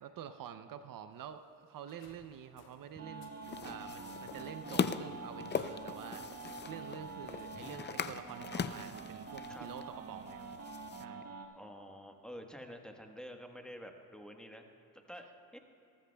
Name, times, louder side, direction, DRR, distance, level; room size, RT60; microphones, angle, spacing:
voice 1, 0.0-3.3 3.6-10.4 10.9-11.2, right 9 dB, 60° right, 10 dB, 0.6 m, -48 dB
sound 1, 1.1-8.4, left 5 dB, 80° left, 1.5 m, -64 dB
sound 2, 3.0-11.5, right 4 dB, 40° right, 1.7 m, -47 dB
sound 3, 3.4-11.0, left 7 dB, 30° left, 0.5 m, -40 dB
voice 2, 11.5-14.6 15.1-15.3 15.5-15.6, equal, ahead, 3 dB, 1.2 m, -48 dB
19.0 x 13.5 x 2.3 m, 2.9 s
cardioid pair, 80°, 38 cm